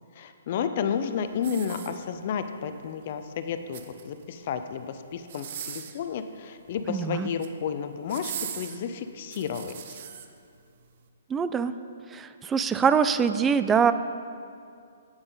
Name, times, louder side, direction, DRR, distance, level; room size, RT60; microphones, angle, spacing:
voice 1, 0.2-10.0, left 7 dB, 50° left, 9 dB, 0.5 m, -32 dB
sound 1, 1.4-2.4 3.5-4.3 5.2-6.0 7.1-7.6 8.1-10.3 10.8-11.0, right 9 dB, 50° right, 0.7 m, -39 dB
voice 2, 6.9-7.3 11.3-11.7 12.1-13.9, right 6 dB, 15° right, 12 dB, 0.3 m, -23 dB
8.8 x 7.9 x 3.9 m, 2.4 s
hypercardioid pair, 140°, 0 cm